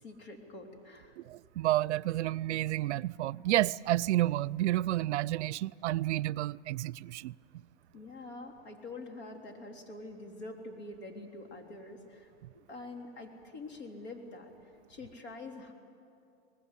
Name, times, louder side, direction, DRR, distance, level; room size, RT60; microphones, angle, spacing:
voice 1, 0.0-1.1 7.9-14.5 14.9-15.7, left 2 dB, 70° left, 3.7 m, -46 dB
voice 2, 1.2-7.3, right 15 dB, 90° right, 0.5 m, -30 dB
24.0 x 20.0 x 8.3 m
supercardioid pair, 140°, 34 cm